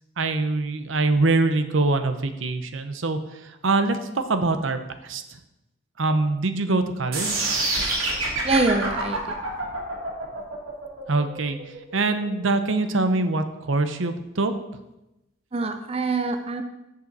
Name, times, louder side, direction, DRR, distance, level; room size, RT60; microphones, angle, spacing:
voice 1, 0.2-5.4 6.0-7.6 11.1-14.5, right 3 dB, 70° right, 9 dB, 0.8 m, -24 dB
sound 1, 7.1-13.2, right 2 dB, 90° right, 2.8 m, -27 dB
voice 2, 8.4-9.2 15.5-16.6, right 3 dB, 30° right, 6 dB, 0.5 m, -24 dB
14.5 x 5.6 x 4.0 m, 0.95 s
head